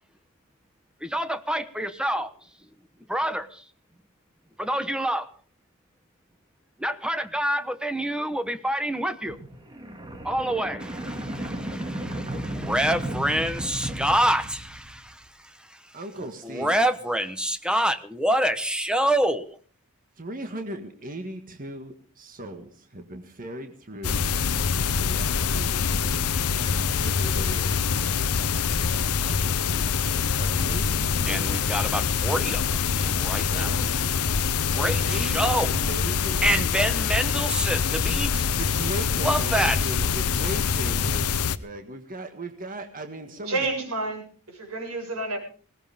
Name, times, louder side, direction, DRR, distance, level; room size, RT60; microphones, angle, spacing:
voice 1, 1.0-2.5 3.1-3.7 4.6-5.3 6.8-9.4 10.2-19.6 31.3-33.9 34.7-35.8 36.4-38.5 39.2-39.8, right 1 dB, 5° right, 1.1 m, -27 dB
sound 1, 9.3-15.1, right 1 dB, 20° right, 2.2 m, -34 dB
voice 2, 15.9-16.7 20.2-24.2 24.9-28.0 28.9-31.6 33.5-34.2 34.6-36.5 38.5-43.7, right 1 dB, 40° right, 1.7 m, -38 dB
sound 2, 24.0-41.6, left 6 dB, 85° left, 0.8 m, -25 dB
voice 3, 43.5-45.4, right 2 dB, 80° right, 7.7 m, -30 dB
20.0 x 18.5 x 3.6 m
head